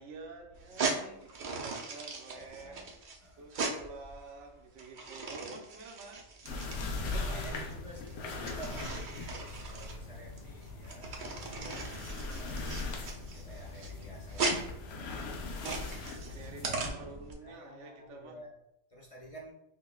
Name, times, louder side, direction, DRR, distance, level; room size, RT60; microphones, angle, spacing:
voice 1, 0.0-2.8 3.4-6.3 7.0-7.6 16.0-18.4, right 3 dB, 80° right, 2 dB, 1.0 m, -48 dB
sound 1, 0.6-17.3, right 3 dB, 55° right, 0.6 m, -39 dB
voice 2, 2.3-2.9 3.2-3.5 6.6-14.5 17.4-18.5 18.9-19.5, equal, 45° left, -3 dB, 0.4 m, -50 dB
sound 2, 6.4-16.9, left 3 dB, 80° left, 0.9 m, -40 dB
5.5 x 2.2 x 2.3 m, 0.77 s
omnidirectional pair, 1.2 m